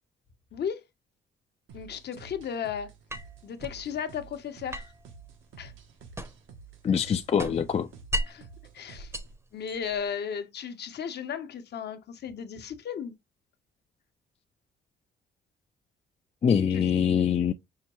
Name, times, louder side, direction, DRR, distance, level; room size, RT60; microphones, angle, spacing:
voice 1, 0.5-0.8 1.7-2.9 3.4-4.9 5.6-5.7 8.3-8.5 8.7-9.1 9.5-13.1 16.7-16.9, left 7 dB, 55° left, 0.8 m, -35 dB
sound 1, 1.7-9.4, right 6 dB, 80° right, 0.9 m, -51 dB
sound 2, 3.1-3.8 4.7-6.6 6.9-8.5 9.0-10.1, equal, 15° right, 0.7 m, -36 dB
voice 2, 6.8-7.9 16.4-17.5, left 7 dB, 30° left, 0.4 m, -24 dB
5.6 x 2.2 x 2.9 m
cardioid pair, 90°, 20 cm